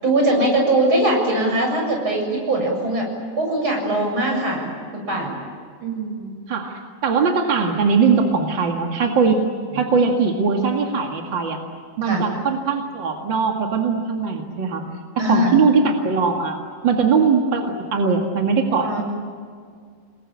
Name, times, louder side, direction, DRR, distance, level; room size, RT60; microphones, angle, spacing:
voice 1, 0.0-3.1 3.4-5.4 12.0-12.3 15.2-15.6 18.8-19.0, right 1 dB, 25° right, 1 dB, 7.8 m, -21 dB
voice 2, 5.8-9.4 9.7-11.6 12.0-14.9 15.3-16.6 16.8-19.0, right 5 dB, 45° right, 2 dB, 1.6 m, -20 dB
30.0 x 21.0 x 8.8 m, 2.1 s
omnidirectional pair, 5.2 m